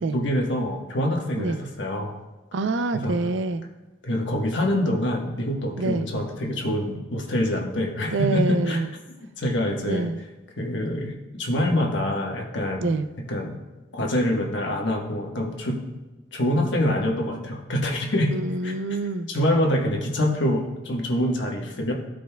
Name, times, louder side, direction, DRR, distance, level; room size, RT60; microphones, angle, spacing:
voice 1, 0.1-2.1 2.9-3.1 4.0-8.8 9.4-10.1 10.6-12.9 13.3-13.6 13.9-15.8 16.3-18.7 19.3-21.9, left 1 dB, 85° left, 0 dB, 1.2 m, -25 dB
voice 2, 2.5-3.6 5.8-6.1 8.1-8.9 9.8-10.2 12.8-13.1 18.3-19.3, right 3 dB, 85° right, 10 dB, 0.5 m, -26 dB
14.0 x 5.1 x 2.3 m, 1.2 s
head